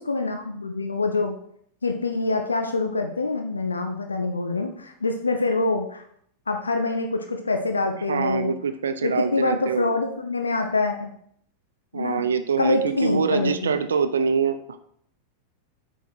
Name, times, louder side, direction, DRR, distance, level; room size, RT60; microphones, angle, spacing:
voice 1, 0.0-1.3 1.8-6.0 6.5-8.5 9.0-11.1 11.9-12.2 12.6-13.7, left 3 dB, 75° left, 5 dB, 0.8 m, -25 dB
voice 2, 8.1-9.9 11.9-14.8, right 6 dB, 70° right, 10 dB, 0.7 m, -24 dB
8.3 x 4.7 x 6.2 m, 0.67 s
figure-of-eight pair, 90°, 0 cm